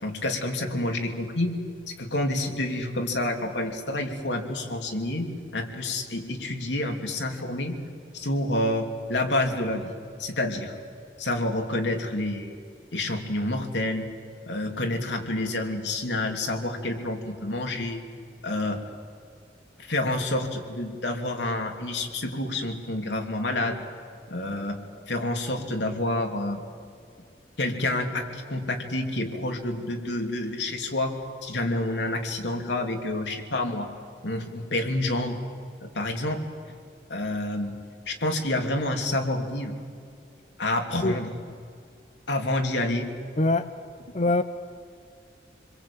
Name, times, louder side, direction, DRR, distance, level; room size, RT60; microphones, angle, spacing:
voice 1, 0.0-1.6 1.9-7.8 8.1-9.9 10.2-10.7 11.2-12.6 12.9-14.1 14.5-18.0 18.4-18.8 19.9-23.8 24.3-24.8 25.1-26.6 27.6-31.1 31.4-33.9 34.2-35.4 35.8-36.4 37.1-37.7 38.1-39.8 40.6-41.3 42.3-43.1, left 1 dB, 90° left, 3 dB, 3.1 m, -28 dB
voice 2, 43.4-43.7 44.1-44.4, left 2 dB, 40° left, 10 dB, 0.7 m, -22 dB
27.0 x 22.0 x 8.8 m, 2.3 s
head